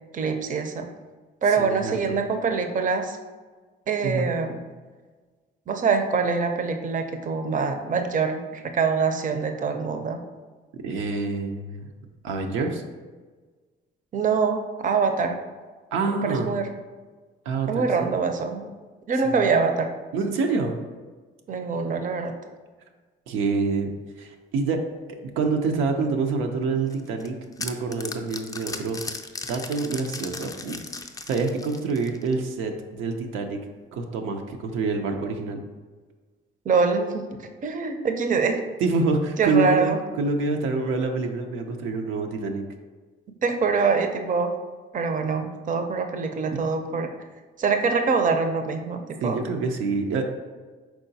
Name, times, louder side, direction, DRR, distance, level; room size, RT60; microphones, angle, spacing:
voice 1, 0.1-0.9 1.4-3.2 3.9-4.6 5.7-10.2 14.1-15.4 16.1-16.7 17.7-18.7 19.1-19.9 21.5-22.3 36.7-37.3 37.6-38.6 39.4-40.0 43.4-44.5 44.9-47.1 47.6-49.4, right 5 dB, 40° right, 6 dB, 0.5 m, -24 dB
voice 2, 1.6-2.2 4.0-4.3 10.8-11.8 12.2-12.8 15.9-16.5 17.5-18.1 19.2-19.3 20.1-20.8 23.3-23.9 24.2-24.8 25.4-29.0 29.5-30.8 31.3-33.6 33.9-35.6 38.8-42.6 49.2-50.2, right 4 dB, 90° right, 3 dB, 0.5 m, -26 dB
sound 1, 26.9-32.4, left 3 dB, 20° left, 0.4 m, -37 dB
4.7 x 3.8 x 2.7 m, 1.4 s
cardioid pair, 90°, 20 cm